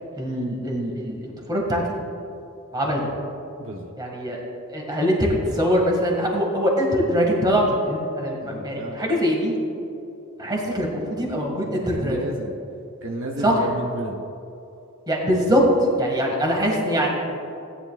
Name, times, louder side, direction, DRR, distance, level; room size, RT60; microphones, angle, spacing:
voice 1, 0.2-1.2 1.5-1.8 2.7-3.1 4.0-4.4 4.7-9.5 10.4-12.2 13.4-13.6 15.1-15.6 16.0-17.1, equal, 20° right, -1 dB, 2.0 m, -23 dB
voice 2, 3.6-3.9 8.4-9.0 11.6-12.5 13.0-14.2, right 1 dB, 60° right, 0 dB, 0.9 m, -32 dB
17.0 x 9.9 x 2.4 m, 2.8 s
head